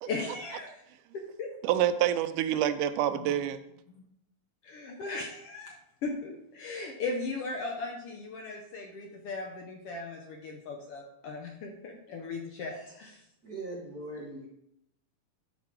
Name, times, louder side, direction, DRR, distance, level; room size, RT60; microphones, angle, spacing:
voice 1, 0.0-0.8 1.1-1.5 3.2-3.3 3.9-4.0 4.6-5.8 6.0-13.2, left 3 dB, 70° left, 1 dB, 1.4 m, -37 dB
voice 2, 1.6-3.6, right 11 dB, 85° right, 11 dB, 2.1 m, -27 dB
voice 3, 12.7-13.1 13.4-14.5, right 2 dB, 70° right, -3 dB, 0.9 m, -41 dB
11.5 x 4.4 x 4.4 m, 0.79 s
omnidirectional pair, 3.6 m